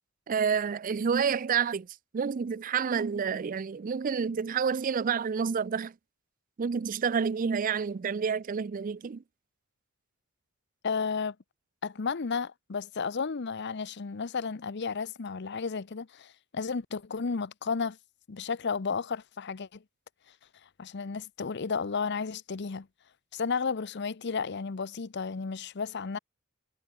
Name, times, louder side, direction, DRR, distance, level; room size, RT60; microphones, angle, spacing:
voice 1, 0.3-1.9 2.1-5.9 6.6-9.2, right 6 dB, 40° right, 0.4 m, -29 dB
voice 2, 10.8-11.3 11.8-18.0 18.3-19.8 20.8-22.9 23.3-26.2, left 5 dB, 55° left, 0.7 m, -33 dB
head